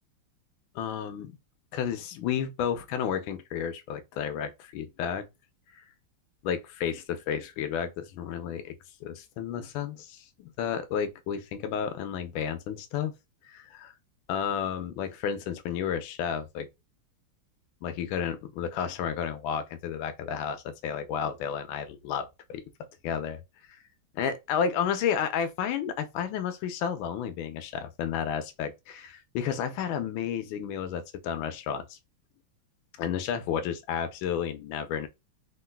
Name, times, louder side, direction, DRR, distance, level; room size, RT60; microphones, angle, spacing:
voice 1, 0.7-1.3 1.7-5.3 5.7-5.8 6.4-8.7 9.0-13.1 13.4-13.9 14.3-16.7 17.8-22.6 23.0-23.4 23.7-23.8 24.1-32.0 33.0-35.1, left 8 dB, 75° left, 1.2 m, -32 dB
3.7 x 2.3 x 2.2 m
omnidirectional pair, 2.4 m